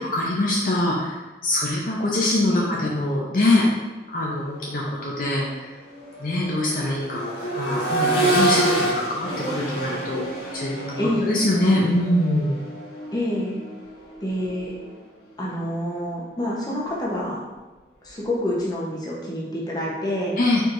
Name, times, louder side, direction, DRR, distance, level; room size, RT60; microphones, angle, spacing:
voice 1, 0.1-1.2 1.4-3.6 4.1-5.7 6.2-7.2 7.5-10.3 10.5-11.0 11.3-12.6 20.4-20.6, left 1 dB, 50° left, -4 dB, 0.6 m, -23 dB
Accelerating revving vroom, 4.5-4.7 5.1-15.0 16.7-16.8, right 1 dB, 80° left, 1.4 m, -28 dB
voice 2, 11.0-11.3 13.1-13.6 14.2-14.7 15.4-17.4 18.0-20.3, left 1 dB, 20° left, -4 dB, 0.9 m, -27 dB
4.5 x 4.5 x 2.6 m, 1.1 s
head